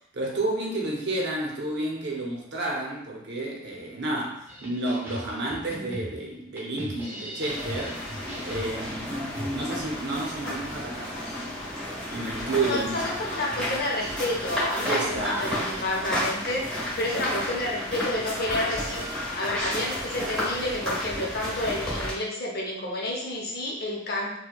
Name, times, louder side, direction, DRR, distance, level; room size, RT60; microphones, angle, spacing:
voice 1, 0.1-8.0 8.4-11.2 12.1-13.1 14.8-15.5 15.7-15.9, right 2 dB, 60° right, -1 dB, 0.7 m, -31 dB
sound 1, 4.5-9.9, right 1 dB, 10° right, 0.6 m, -39 dB
sound 2, 7.4-22.1, left 1 dB, 5° left, 1.3 m, -32 dB
voice 2, 12.7-24.4, left 1 dB, 55° left, -2 dB, 0.7 m, -30 dB
4.4 x 2.2 x 2.3 m, 0.79 s
head